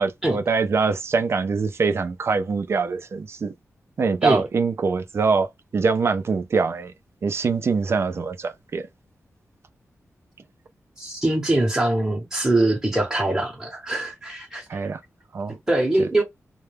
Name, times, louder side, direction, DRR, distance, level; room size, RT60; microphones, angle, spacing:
voice 1, 0.0-3.5 4.0-6.9 7.2-8.9 14.7-15.0 15.3-15.6 16.0-16.1, right 4 dB, 50° right, 0.4 m, -24 dB
voice 2, 11.0-14.8 15.7-16.2, right 1 dB, 10° right, 0.8 m, -23 dB
2.2 x 2.0 x 3.2 m
wide cardioid pair, 130°, 5 cm